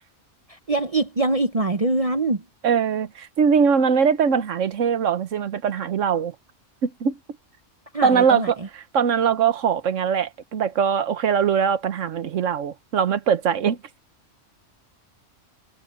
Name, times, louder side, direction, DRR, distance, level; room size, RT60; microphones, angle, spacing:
voice 1, 0.5-2.4 7.9-8.7, right 2 dB, 30° right, 0.8 m, -24 dB
voice 2, 2.6-6.3 6.8-7.2 8.0-13.8, right 7 dB, 75° right, 1.3 m, -21 dB
omnidirectional pair, 1.3 m